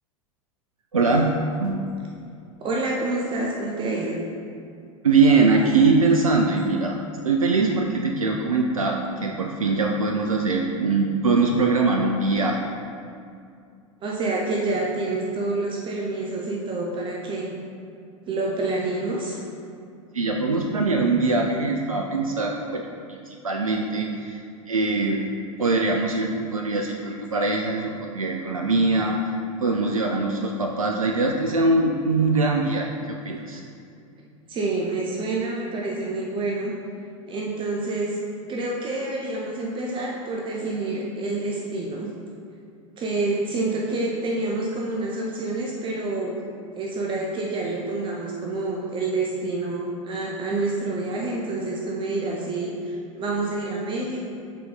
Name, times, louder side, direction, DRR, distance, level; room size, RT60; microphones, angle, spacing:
voice 1, 0.9-1.8 5.0-7.0 7.2-12.7 20.1-24.4 24.7-25.3 25.6-29.2 29.6-33.6, right 3 dB, 85° right, 2 dB, 0.4 m, -22 dB
voice 2, 2.6-4.2 14.0-17.5 18.3-19.4 34.5-36.7 37.3-38.2 38.5-42.1 43.0-46.4 46.8-54.3, right 2 dB, 30° right, -2 dB, 0.7 m, -27 dB
6.7 x 3.9 x 3.7 m, 2.4 s
figure-of-eight pair, 85°, 17 cm